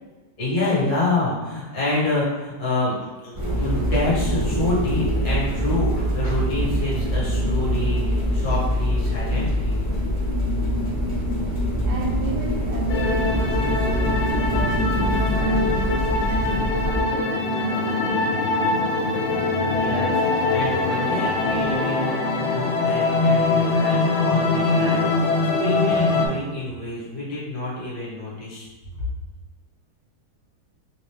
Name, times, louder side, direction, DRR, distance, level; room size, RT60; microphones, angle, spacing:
voice 1, 0.4-3.0 3.2-9.8 19.7-28.7, left 2 dB, 50° left, -7 dB, 1.7 m, -27 dB
sound 1, 3.3-17.0, equal, 25° right, 0.6 m, -24 dB
voice 2, 11.8-18.2, right 4 dB, 75° right, -1 dB, 0.9 m, -32 dB
sound 2, 12.9-26.3, left 3 dB, 75° left, 1.4 m, -22 dB
3.7 x 2.6 x 3.3 m, 1.2 s
omnidirectional pair, 2.3 m